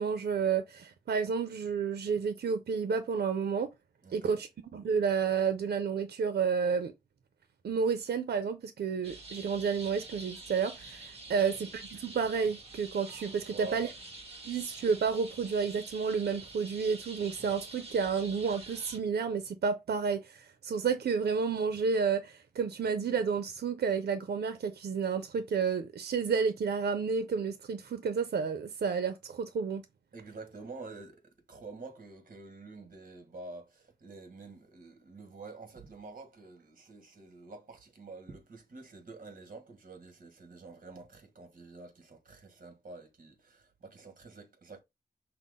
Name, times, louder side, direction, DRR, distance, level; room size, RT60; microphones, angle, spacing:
voice 1, 0.0-3.7 4.1-6.9 7.6-13.9 14.4-29.8, right 6 dB, 85° right, 0.5 m, -31 dB
voice 2, 4.0-4.4 11.3-11.6 13.4-13.9 30.1-44.8, right 3 dB, 55° right, 1.4 m, -48 dB
sound 1, 9.0-19.0, right 2 dB, 35° right, 1.5 m, -47 dB
5.6 x 2.1 x 3.6 m
wide cardioid pair, 95°, 17 cm